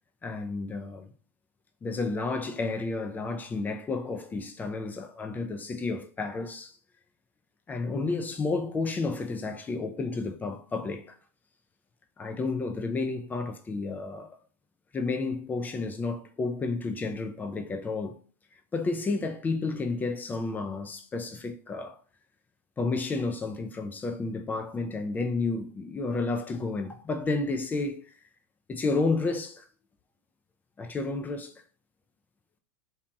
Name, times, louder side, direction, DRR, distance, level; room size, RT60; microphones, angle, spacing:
voice 1, 0.2-1.1 1.8-6.8 7.7-11.1 12.2-14.3 14.9-18.2 18.7-22.0 22.8-28.0 28.7-29.6 30.8-31.5, left 3 dB, 20° left, 0.4 m, -31 dB
2.8 x 2.7 x 2.2 m
hypercardioid pair, 100°, 9 cm